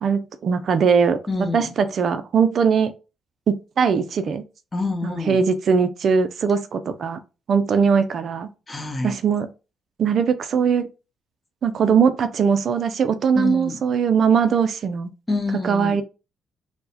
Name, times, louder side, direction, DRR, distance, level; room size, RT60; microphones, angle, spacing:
voice 1, 0.0-1.2 1.5-2.9 3.5-4.4 5.0-7.2 7.5-8.5 9.0-9.5 10.0-10.9 11.6-15.1 15.6-16.0, right 6 dB, 55° right, 0.4 m, -20 dB
voice 2, 1.3-1.7 4.7-5.4 8.7-9.1 13.4-13.8 15.3-16.0, left 3 dB, 20° left, 0.8 m, -26 dB
4.5 x 2.1 x 2.7 m
cardioid pair, 90°, 0 cm